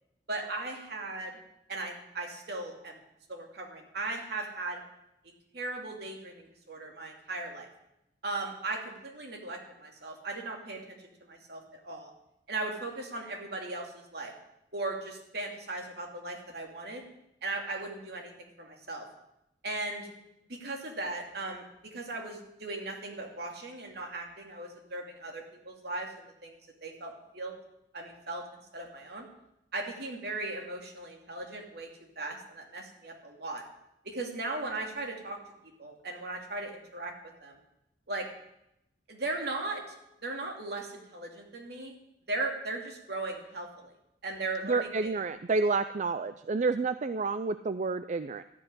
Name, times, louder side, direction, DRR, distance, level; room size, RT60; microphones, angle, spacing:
voice 1, 0.3-1.4 1.7-3.0 3.3-4.8 5.5-7.7 8.2-12.1 12.5-14.3 14.7-17.0 17.4-19.1 19.6-20.1 20.5-27.5 27.9-28.4 28.7-29.3 29.7-31.9 32.2-33.6 34.0-35.4 35.8-37.1 37.4-37.6 38.1-38.3 39.1-39.8 40.2-42.0 42.3-43.9 44.2-45.1, right 2 dB, 65° right, 2 dB, 2.7 m, -37 dB
voice 2, 44.6-48.4, right 3 dB, 45° right, 12 dB, 0.4 m, -29 dB
13.0 x 7.9 x 10.0 m, 0.84 s
head